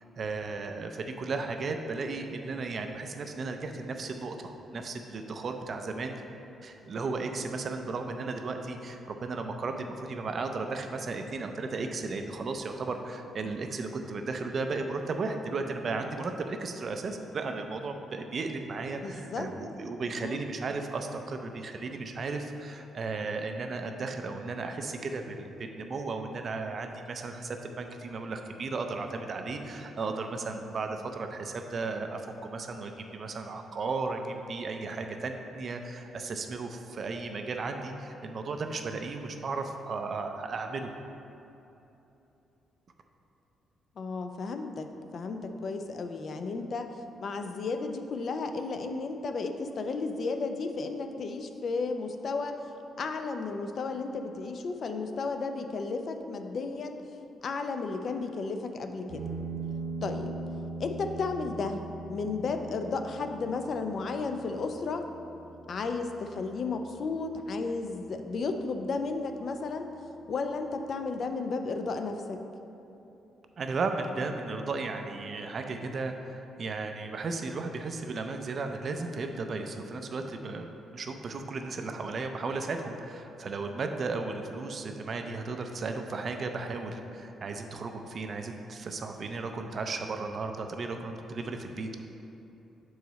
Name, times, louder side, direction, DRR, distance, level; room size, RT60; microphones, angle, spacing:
voice 1, 0.2-6.1 6.6-40.9 73.6-92.0, right 3 dB, 40° right, 5 dB, 0.4 m, -35 dB
voice 2, 19.0-19.5 20.2-20.4 44.0-52.6 53.0-57.0 57.4-59.3 60.0-60.4 60.8-61.8 62.1-65.1 65.7-69.9 70.3-72.4, left 4 dB, 50° left, 6 dB, 0.4 m, -33 dB
sound 1, 59.1-68.1, right 3 dB, 85° right, 1.3 m, -41 dB
6.4 x 4.7 x 4.0 m, 2.9 s
cardioid pair, 135°, 0 cm